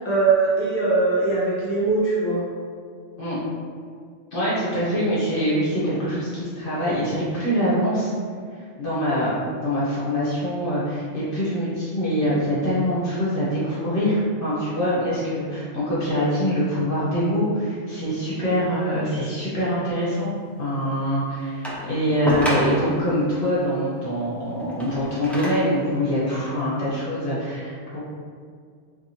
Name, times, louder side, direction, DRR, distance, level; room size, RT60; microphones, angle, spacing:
voice 1, 0.0-2.4, right 3 dB, 25° left, -8 dB, 1.2 m, -21 dB
voice 2, 4.3-8.1 8.5-9.3 9.6-20.3 20.6-28.0, equal, 50° left, -9 dB, 1.1 m, -24 dB
sound 1, 21.6-23.1 24.6-25.8 26.6-26.7, equal, ahead, 0.3 m, -28 dB
4.6 x 2.7 x 2.8 m, 2.1 s
omnidirectional pair, 1.2 m